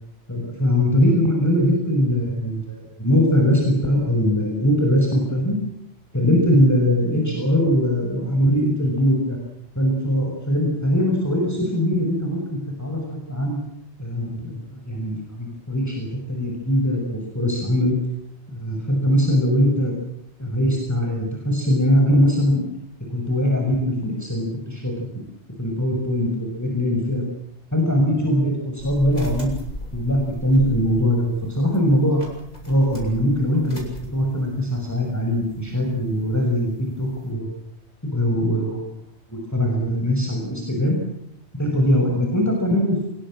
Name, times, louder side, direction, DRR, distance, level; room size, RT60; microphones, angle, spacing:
voice 1, 0.3-5.6 6.1-9.4 9.7-13.0 13.3-13.6 14.0-14.6 14.8-18.0 18.5-19.9 20.4-22.6 23.1-25.1 25.6-27.2 27.7-29.5 29.9-32.2 32.7-33.8 34.1-36.7 37.0-37.5 38.1-38.8 39.3-41.0 41.6-43.0, equal, 15° left, 0 dB, 6.3 m, -21 dB
sound 1, 28.8-37.3, left 1 dB, 35° left, 6.9 m, -39 dB
25.5 x 22.5 x 7.7 m, 0.73 s
omnidirectional pair, 1.2 m